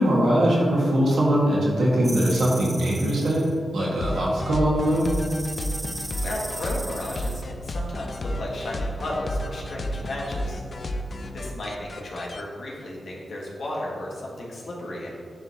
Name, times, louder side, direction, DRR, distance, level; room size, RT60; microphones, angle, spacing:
voice 1, 0.0-3.5 3.7-5.1, right 1 dB, 85° right, -4 dB, 1.4 m, -21 dB
sound 1, 2.0-3.5 4.8-7.4, right 2 dB, 25° right, 0.5 m, -37 dB
sound 2, 4.0-12.4, left 1 dB, 55° left, 0.5 m, -32 dB
voice 2, 6.2-10.6 11.3-15.1, left 1 dB, 75° left, -4 dB, 1.4 m, -34 dB
9.9 x 3.5 x 2.8 m, 2.3 s
cardioid pair, 60°, 0 cm